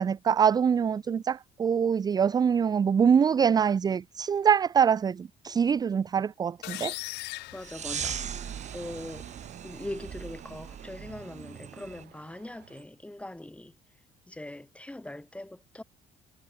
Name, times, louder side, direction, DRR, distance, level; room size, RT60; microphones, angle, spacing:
voice 1, 0.0-6.9, right 7 dB, 25° right, 0.3 m, -24 dB
sound 1, 6.6-8.6, left 20 dB, 85° left, 0.6 m, -39 dB
voice 2, 7.5-8.2 8.7-9.3 9.6-13.7 14.3-15.8, left 1 dB, 5° left, 6.9 m, -41 dB
sound 2, 7.6-12.0, right 8 dB, 45° right, 4.1 m, -39 dB
sound 3, 7.8-12.8, right 15 dB, 75° right, 6.0 m, -50 dB
cardioid pair, 110°, 17 cm